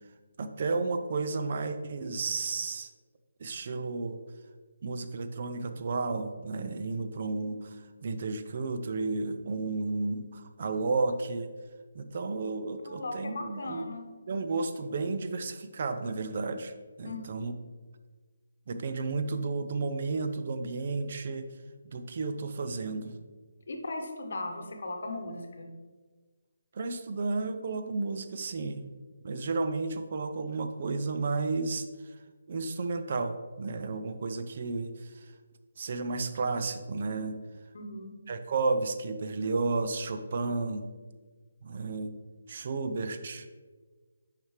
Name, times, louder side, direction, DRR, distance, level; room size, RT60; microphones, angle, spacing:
voice 1, 0.4-2.9 3.4-4.2 4.8-7.8 8.0-11.5 11.9-13.8 14.3-16.7 17.0-17.5 18.7-21.5 21.9-23.1 26.7-28.9 29.2-31.8 32.5-35.1 35.8-37.4 38.3-40.9 41.6-42.1 42.5-43.5, right 3 dB, 50° right, 8 dB, 0.4 m, -32 dB
voice 2, 12.8-14.0 17.0-17.2 23.7-25.7 37.7-38.2, left 2 dB, 60° left, 3 dB, 0.9 m, -37 dB
6.2 x 5.0 x 3.2 m, 1.4 s
figure-of-eight pair, 150°, 0 cm